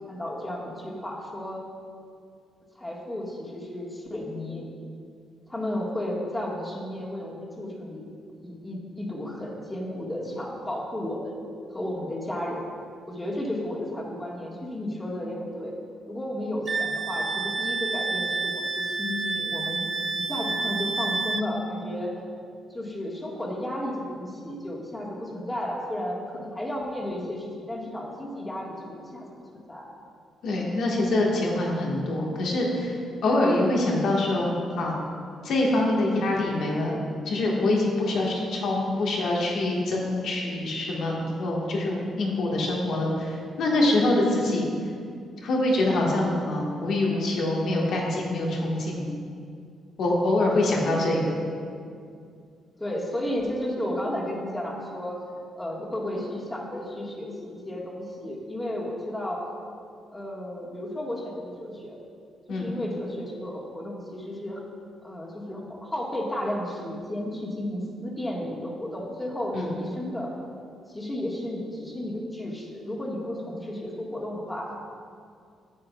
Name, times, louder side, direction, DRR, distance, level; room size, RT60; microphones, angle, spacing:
voice 1, 0.0-1.6 2.7-4.7 5.5-8.0 8.4-11.4 11.7-12.7 13.1-15.7 16.1-19.8 20.1-22.1 22.7-29.3 29.7-29.8 44.4-44.8 51.1-51.2 52.8-55.2 55.5-59.4 60.1-62.0 62.5-64.6 65.0-70.3 70.9-74.7, left 1 dB, 15° left, -3 dB, 1.7 m, -33 dB
Wind instrument woodwind instrument, 16.7-21.5, right 3 dB, 40° right, 0.4 m, -29 dB
voice 2, 30.4-35.0 35.4-36.9 37.2-44.6 45.4-49.1 50.0-51.4 62.5-62.7 69.5-69.7, left 2 dB, 70° left, -2 dB, 1.6 m, -25 dB
10.0 x 7.5 x 2.4 m, 2.3 s
cardioid pair, 80°, 0 cm